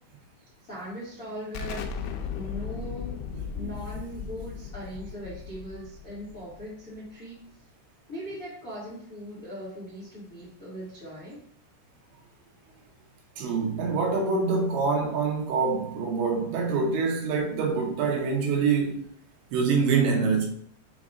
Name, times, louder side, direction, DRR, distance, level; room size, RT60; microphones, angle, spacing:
voice 1, 0.6-3.2 3.5-7.4 8.1-11.4, equal, 45° left, 1.1 m, -40 dB
Explosion, 1.5-7.0, left 6 dB, 85° left, 3.1 m, -36 dB
voice 2, 13.4-19.0 19.5-20.5, right 5 dB, 75° right, 3.1 m, -25 dB
7.3 x 3.5 x 3.7 m
omnidirectional pair, 5.4 m